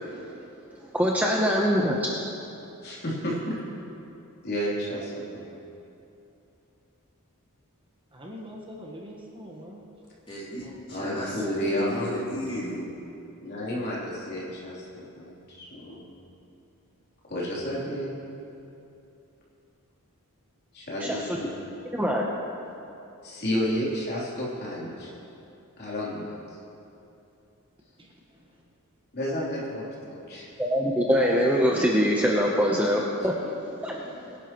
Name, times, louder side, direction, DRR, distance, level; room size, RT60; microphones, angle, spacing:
voice 1, 0.9-2.0 21.0-21.4 21.9-22.2 30.6-34.4, equal, 5° right, -2 dB, 0.8 m, -24 dB
voice 2, 2.8-3.6 4.4-5.4 10.9-12.1 13.4-16.0 17.3-18.1 20.7-21.5 23.2-25.1 25.8-26.3 29.1-30.5 31.0-31.1, equal, 45° left, -6 dB, 3.4 m, -31 dB
voice 3, 8.1-9.8 10.6-11.3 28.0-28.5, equal, 25° right, -2 dB, 1.3 m, -44 dB
voice 4, 10.3-12.9, equal, 25° left, -6 dB, 3.0 m, -35 dB
22.5 x 11.0 x 3.1 m, 2.8 s
head